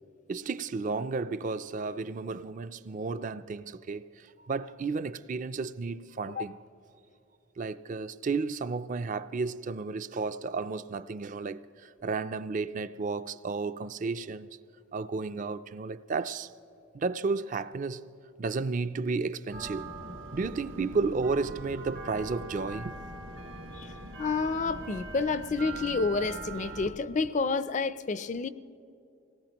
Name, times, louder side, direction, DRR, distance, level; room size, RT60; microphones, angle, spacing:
voice 1, 0.3-6.6 7.6-14.5 14.9-16.5 16.9-18.0 18.4-19.9 20.3-23.0, right 4 dB, 40° right, 0.4 m, -33 dB
sound 1, 19.5-26.9, right 2 dB, 75° right, 2.6 m, -41 dB
voice 2, 24.2-28.5, left 4 dB, 35° left, 0.4 m, -29 dB
25.5 x 18.5 x 3.0 m
head